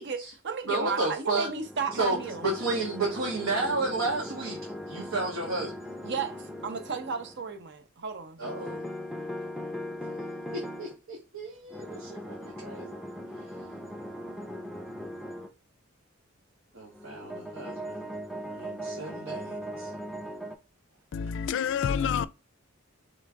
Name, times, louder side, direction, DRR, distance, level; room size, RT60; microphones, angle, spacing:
voice 1, 0.0-2.4 6.0-8.4, right 5 dB, 60° right, 0.7 m, -34 dB
voice 2, 0.7-1.5 1.9-4.6 4.9-5.7 8.4-8.8 10.5-13.0 16.7-18.0 18.5-19.9, right 2 dB, 90° right, 1.2 m, -32 dB
sound 1, 1.4-7.6 8.4-10.9 11.7-15.5 16.8-20.6, equal, ahead, 0.4 m, -39 dB
voice 3, 21.1-22.3, left 7 dB, 65° left, 0.3 m, -28 dB
3.8 x 3.1 x 3.5 m
head